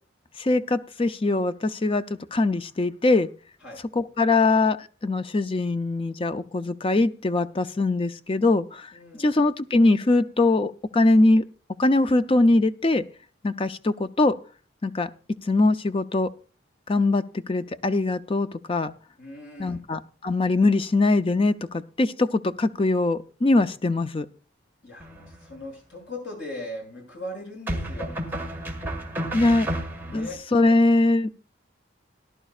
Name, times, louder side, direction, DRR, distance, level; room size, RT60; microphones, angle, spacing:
voice 1, 0.4-2.0 2.3-3.3 3.9-8.9 9.2-11.4 11.8-13.0 13.4-14.4 14.8-15.1 15.5-16.3 16.9-18.9 19.6-24.3 29.3-29.7 30.1-31.3, left 2 dB, 25° left, 11 dB, 0.4 m, -22 dB
voice 2, 8.9-9.3 19.2-19.8 24.8-28.1 30.0-30.4, left 1 dB, 65° left, 0 dB, 6.9 m, -39 dB
sound 1, 25.0-25.6 27.7-30.3, right 1 dB, 10° right, 1.8 m, -32 dB
18.5 x 11.0 x 2.4 m, 0.39 s
head